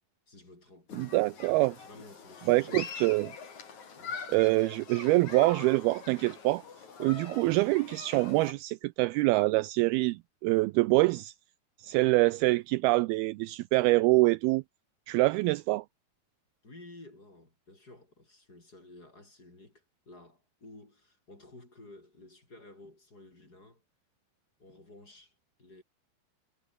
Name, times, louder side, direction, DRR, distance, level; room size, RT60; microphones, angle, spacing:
voice 1, 0.3-1.1 1.8-2.9 3.9-4.2 16.6-23.8 24.6-25.8, left 2 dB, 20° left, 5.9 m, -53 dB
Human group actions, 0.9-8.5, left 6 dB, 45° left, 4.8 m, -44 dB
voice 2, 0.9-1.8 2.5-3.3 4.3-6.6 7.0-11.3 11.8-14.6 15.1-15.8, right 21 dB, 85° right, 2.2 m, -25 dB
omnidirectional pair, 5.0 m